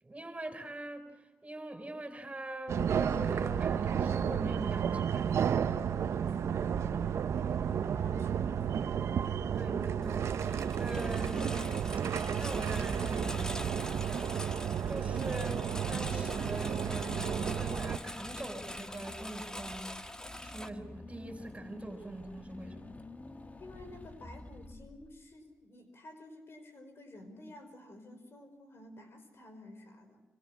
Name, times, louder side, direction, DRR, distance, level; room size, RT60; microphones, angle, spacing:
voice 1, 0.0-1.0 1.4-5.2 9.5-11.8 12.4-13.7 14.9-20.0 20.4-22.9, right 1 dB, 25° right, 4.6 m, -42 dB
sound 1, 2.7-18.0, right 8 dB, 75° right, 0.9 m, -32 dB
voice 2, 5.9-7.2 7.8-8.8 23.6-30.2, left 1 dB, 60° left, 5.2 m, -52 dB
Engine, 10.0-20.7, left 1 dB, 15° left, 1.7 m, -44 dB
Car / Engine, 16.2-25.3, left 2 dB, 30° left, 1.5 m, -49 dB
25.5 x 25.5 x 6.3 m
cardioid pair, 50°, 5 cm